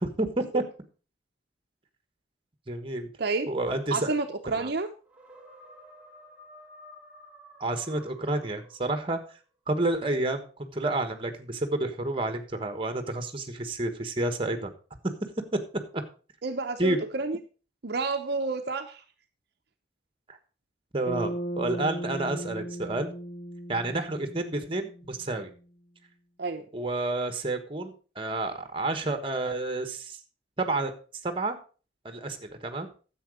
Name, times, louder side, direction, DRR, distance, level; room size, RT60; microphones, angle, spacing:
voice 1, 0.0-0.6 2.7-3.1 3.5-4.1 4.6-4.7 7.6-9.2 9.7-14.7 15.9-16.0 16.8-17.0 20.3-20.4 20.9-23.1 23.7-25.5 26.7-30.2 30.6-30.9 31.2-31.6 32.0-32.9, right 2 dB, 30° right, 8 dB, 1.2 m, -30 dB
voice 2, 3.2-3.5 3.9-4.9 16.4-17.4 17.8-19.0 26.4-26.7, right 3 dB, 60° right, 5 dB, 0.8 m, -30 dB
sound 1, 5.1-9.2, equal, 5° right, 2.4 m, -51 dB
Bass guitar, 21.1-25.4, right 1 dB, 50° left, 1.1 m, -37 dB
10.0 x 7.7 x 4.9 m, 0.37 s
head